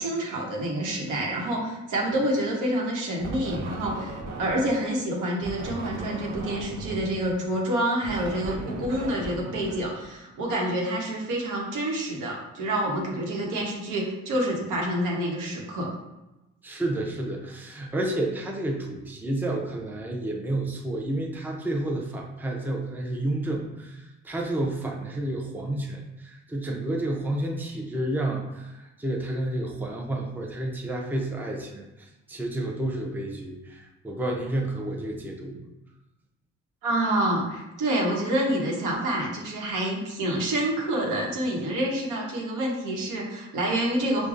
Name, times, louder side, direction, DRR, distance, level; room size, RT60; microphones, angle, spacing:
voice 1, 0.0-15.9 36.8-44.3, right 1 dB, 85° right, -1 dB, 1.0 m, -27 dB
sound 1, 3.2-4.8 5.4-10.5, right 2 dB, 60° right, 0.6 m, -37 dB
voice 2, 16.6-35.7, right 1 dB, 5° right, 0 dB, 0.5 m, -30 dB
4.8 x 2.2 x 2.5 m, 0.99 s
cardioid pair, 90°, 30 cm